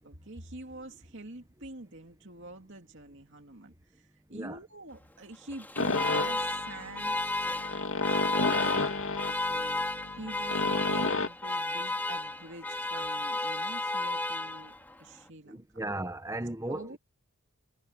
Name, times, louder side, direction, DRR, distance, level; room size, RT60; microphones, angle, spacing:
voice 1, 0.0-9.9 10.1-14.7 15.0-15.7 16.7-17.0, right 2 dB, 55° right, 2.6 m, -47 dB
Alarm, 5.5-14.9, left 2 dB, 10° left, 2.8 m, -33 dB
sound 1, 5.8-11.3, left 3 dB, 65° left, 2.0 m, -31 dB
voice 2, 15.5-17.0, right 1 dB, 15° right, 1.0 m, -36 dB
head